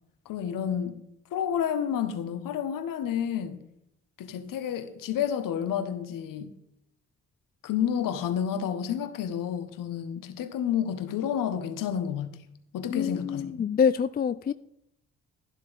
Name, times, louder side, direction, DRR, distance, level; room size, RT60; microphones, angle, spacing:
voice 1, 0.2-1.0 1.3-3.7 4.2-6.5 7.6-12.4 12.7-13.5, left 9 dB, 65° left, 1.4 m, -30 dB
voice 2, 12.9-14.5, left 7 dB, 25° left, 0.5 m, -26 dB
13.5 x 11.5 x 3.6 m
figure-of-eight pair, 40°, 36 cm